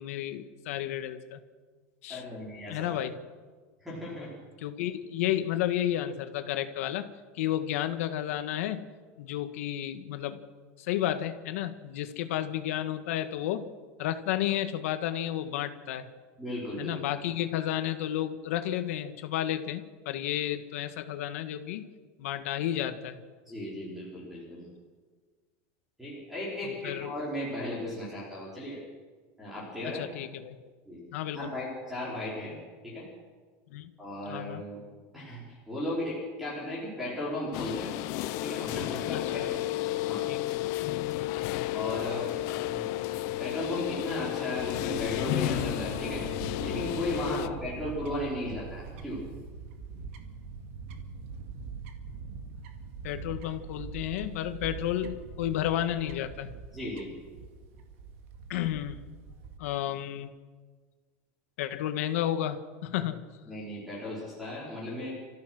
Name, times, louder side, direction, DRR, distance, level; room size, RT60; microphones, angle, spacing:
voice 1, 0.0-1.4 2.0-2.2 2.7-3.1 4.6-7.1 7.3-8.8 9.2-10.4 10.8-13.7 14.0-16.0 16.8-21.9 22.2-23.2 26.6-27.1 29.9-30.6 31.1-31.5 33.7-33.9 34.3-34.6 39.1-39.4 40.3-40.4 47.3-47.6 53.0-56.5 58.5-59.0 59.6-60.3 61.6-63.3, left 12 dB, 75° left, 9 dB, 1.7 m, -32 dB
voice 2, 2.1-3.0 3.8-4.3 16.4-17.0 23.5-24.7 26.0-28.8 29.4-30.1 30.8-31.0 31.3-32.5 32.8-33.1 34.0-34.8 35.1-37.9 38.4-39.6 40.0-40.3 41.7-42.3 42.7-42.9 43.4-46.2 46.6-49.2 56.7-57.1 63.4-65.1, left 1 dB, ahead, -6 dB, 4.9 m, -36 dB
sound 1, 37.5-47.5, left 15 dB, 45° left, 0.7 m, -32 dB
Fowl / Bird, 44.9-59.6, right 5 dB, 65° right, 2.1 m, -43 dB
29.5 x 14.5 x 6.2 m, 1.5 s
supercardioid pair, 175°, 7 cm